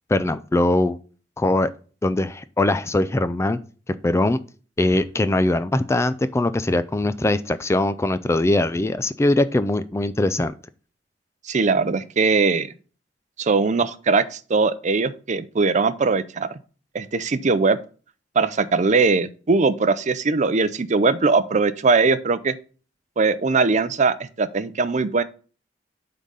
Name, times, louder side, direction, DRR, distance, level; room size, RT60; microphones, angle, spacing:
voice 1, 0.1-1.0 1.4-1.7 2.0-3.6 4.0-4.4 4.8-10.5, left 2 dB, 15° left, 0.3 m, -21 dB
voice 2, 11.4-12.7 13.4-16.5 16.9-17.8 18.4-22.6 23.2-25.2, right 4 dB, 40° right, 0.5 m, -20 dB
8.3 x 3.9 x 5.4 m
head